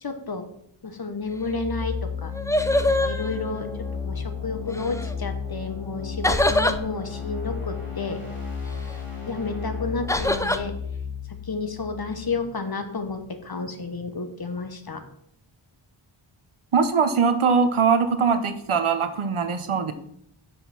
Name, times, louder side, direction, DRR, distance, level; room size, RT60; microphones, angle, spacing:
voice 1, 0.0-0.4 0.8-2.3 2.9-8.2 9.2-10.7 11.4-15.0 19.7-19.9, left 3 dB, 45° left, 7 dB, 1.2 m, -31 dB
sound 1, 1.3-13.1, left 6 dB, 75° left, 2.8 m, -33 dB
sound 2, 1.8-1.9 2.2-4.0 4.7-5.1 6.2-6.8 10.1-10.6, left 1 dB, 5° left, 0.5 m, -24 dB
voice 2, 16.7-19.9, right 5 dB, 75° right, 8 dB, 1.0 m, -21 dB
6.3 x 5.2 x 5.9 m, 0.71 s
wide cardioid pair, 60°, 50 cm